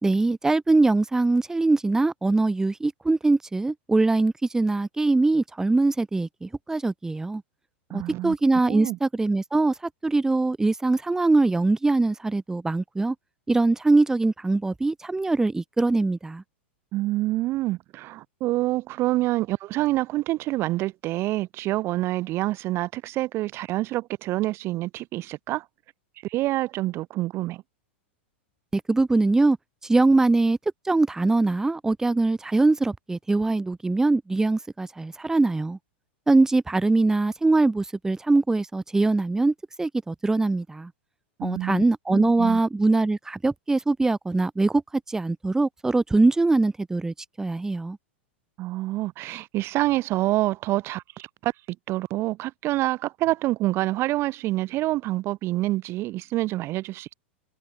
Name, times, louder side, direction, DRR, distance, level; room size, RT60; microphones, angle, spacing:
voice 1, 0.0-7.4 7.9-9.7 10.0-13.1 13.5-16.4 28.7-29.6 29.8-30.6 30.8-35.8 36.3-40.9 41.4-44.8 45.1-48.0, right 3 dB, 10° right, 1.0 m, -22 dB
voice 2, 7.9-8.3 8.7-9.0 16.9-25.7 26.2-27.6 41.4-41.8 42.1-42.6 48.6-51.5 51.9-57.1, right 17 dB, 40° right, 0.9 m, -27 dB
hypercardioid pair, 110°, 6 cm